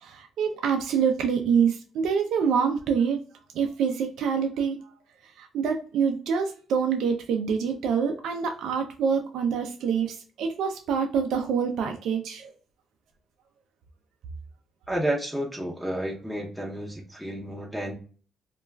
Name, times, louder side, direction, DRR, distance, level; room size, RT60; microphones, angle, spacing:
voice 1, 0.0-3.2 3.5-4.8 5.4-12.5, right 6 dB, 80° right, 4 dB, 0.3 m, -26 dB
voice 2, 14.9-17.9, right 1 dB, ahead, -1 dB, 0.6 m, -31 dB
2.2 x 2.2 x 3.1 m, 0.39 s
cardioid pair, 90°, 0 cm